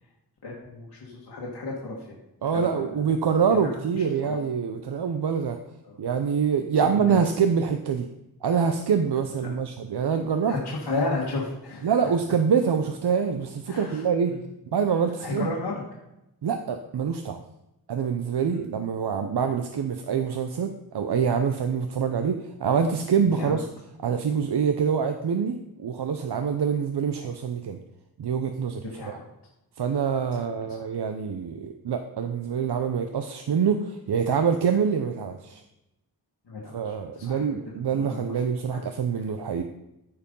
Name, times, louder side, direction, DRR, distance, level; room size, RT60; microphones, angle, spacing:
voice 1, 0.4-2.2 2.4-3.2 3.5-4.4 5.8-6.0 6.7-7.2 9.4-9.5 10.5-12.0 13.7-14.4 15.2-15.8 18.5-18.6 23.2-23.6 28.8-29.3 30.3-30.8 36.4-38.8, left 3 dB, 80° left, -4 dB, 1.9 m, -34 dB
voice 2, 2.4-5.6 6.0-8.1 8.4-10.5 11.8-14.3 14.7-15.5 16.4-17.4 17.9-23.6 24.0-27.8 28.2-29.2 29.8-35.6 36.7-39.6, right 6 dB, 75° right, 7 dB, 0.7 m, -25 dB
14.0 x 4.7 x 5.4 m, 0.89 s
wide cardioid pair, 70°, 40 cm